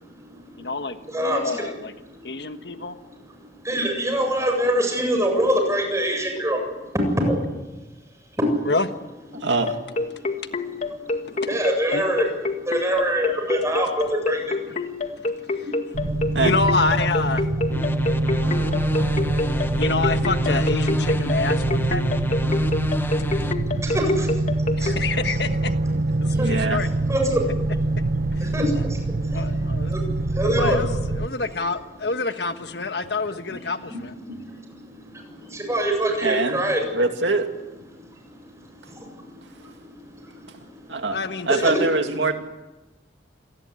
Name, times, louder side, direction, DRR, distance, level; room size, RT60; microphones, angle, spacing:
voice 1, 0.1-0.7 1.1-1.7 2.1-2.9 3.4-6.9 7.2-7.4 8.4-8.7 9.3-9.5 10.2-10.4 11.0-12.3 12.6-16.4 17.9-19.8 22.5-25.0 26.2-26.7 27.1-27.5 28.4-30.8 34.2-36.8 37.9-41.1 41.6-41.7, right 1 dB, 15° right, 3 dB, 7.6 m, -27 dB
voice 2, 0.6-1.9 2.2-3.0 8.6-8.9 11.2-11.6 11.9-12.0 15.2-15.3 15.5-15.6 16.4-17.5 19.5-22.1 24.8-25.7 26.2-26.9 28.3-28.5 28.7-28.8 29.3-30.0 30.4-34.1 41.1-41.7, left 3 dB, 65° left, 8 dB, 1.5 m, -27 dB
voice 3, 9.4-9.8 16.3-16.5 26.3-26.8 36.2-36.6 36.9-37.5 40.9-41.2 41.5-42.3, right 3 dB, 90° right, 5 dB, 2.3 m, -23 dB
sound 1, 9.7-24.9, left 2 dB, 45° left, 2.0 m, -26 dB
sound 2, 15.9-31.3, right 2 dB, 55° right, 0.8 m, -24 dB
sound 3, 17.7-23.5, equal, 15° left, 1.2 m, -30 dB
27.0 x 19.5 x 9.6 m, 1.1 s
head